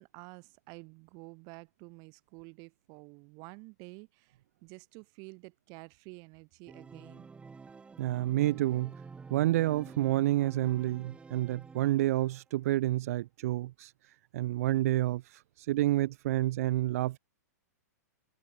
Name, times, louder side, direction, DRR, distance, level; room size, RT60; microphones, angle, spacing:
voice 1, 0.0-7.3, right 32 dB, 40° right, 4.3 m, -50 dB
Organ, 6.7-12.4, right 4 dB, 10° right, 1.8 m, -50 dB
voice 2, 8.0-8.9 9.3-13.9 14.3-15.2 15.7-17.2, right 15 dB, 60° right, 0.8 m, -29 dB
hypercardioid pair, 115°, 9 cm